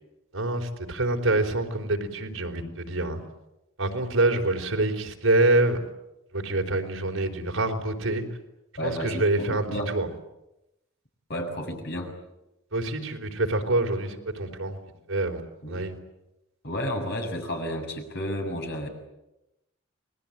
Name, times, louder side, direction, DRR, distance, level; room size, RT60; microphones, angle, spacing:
voice 1, 0.3-3.2 3.8-5.8 6.3-8.2 8.8-10.1 12.7-14.8 15.1-15.4 15.7-15.9, right 2 dB, 75° right, 4 dB, 4.2 m, -26 dB
voice 2, 8.8-9.9 11.3-12.1 15.6-15.8 16.6-18.9, equal, 55° left, 3 dB, 7.0 m, -32 dB
30.0 x 21.5 x 8.9 m, 0.93 s
head